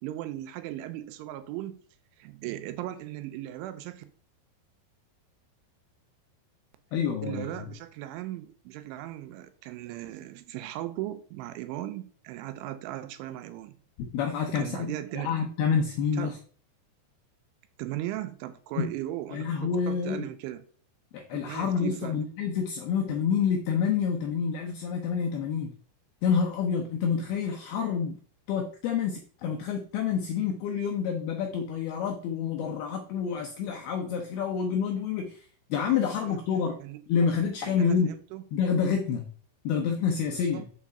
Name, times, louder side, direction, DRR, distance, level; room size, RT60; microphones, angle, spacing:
voice 1, 0.0-1.8 2.2-4.0 7.2-13.8 14.6-15.3 16.1-16.4 17.8-20.6 21.3-22.2 35.9-36.0 36.3-36.4 36.8-37.0 37.6-38.4 40.3-40.6, right 14 dB, 85° right, 3.1 m, -37 dB
voice 2, 6.9-7.5 14.1-16.4 18.8-18.9 19.3-20.3 21.1-25.7 26.2-28.2 28.5-36.8 37.1-38.1 38.5-39.3 39.6-40.7, left 6 dB, 85° left, 2.2 m, -28 dB
7.1 x 4.8 x 5.4 m
omnidirectional pair, 5.4 m